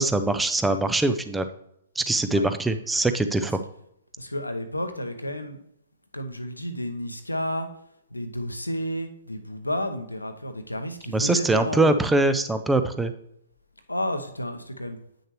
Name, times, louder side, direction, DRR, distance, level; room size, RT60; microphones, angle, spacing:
voice 1, 0.0-1.5 2.0-3.6 11.1-13.1, right 2 dB, 5° right, 9 dB, 0.5 m, -23 dB
voice 2, 4.2-5.6 6.1-7.7 8.1-11.9 13.9-15.0, equal, 90° left, 8 dB, 0.8 m, -31 dB
9.1 x 6.4 x 3.1 m, 0.77 s
figure-of-eight pair, 120°, 0 cm